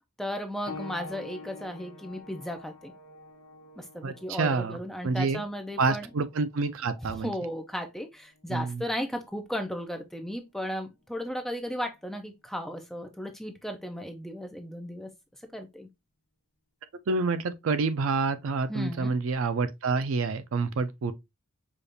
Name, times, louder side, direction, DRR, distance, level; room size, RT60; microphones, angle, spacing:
voice 1, 0.2-2.9 3.8-6.1 7.1-15.1 15.5-15.9 18.7-19.1, equal, ahead, 0.4 m, -35 dB
sound 1, 0.7-10.9 11.8-12.0 12.7-12.8, left 3 dB, 85° left, 0.8 m, -48 dB
voice 2, 4.0-4.8 5.0-5.4 5.8-7.3 8.5-8.8 17.1-21.1, right 4 dB, 65° right, 0.4 m, -28 dB
5.1 x 2.4 x 2.6 m
head